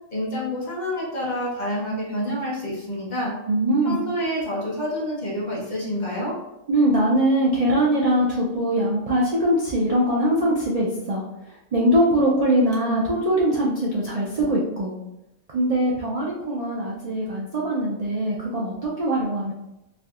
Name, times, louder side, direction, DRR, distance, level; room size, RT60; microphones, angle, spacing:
voice 1, 0.1-3.3 3.8-6.3, equal, 35° left, -6 dB, 1.0 m, -28 dB
voice 2, 3.5-4.0 6.7-11.2 11.7-14.9 15.5-19.5, right 1 dB, 65° right, -5 dB, 0.3 m, -22 dB
3.5 x 2.6 x 2.3 m, 0.92 s
omnidirectional pair, 1.4 m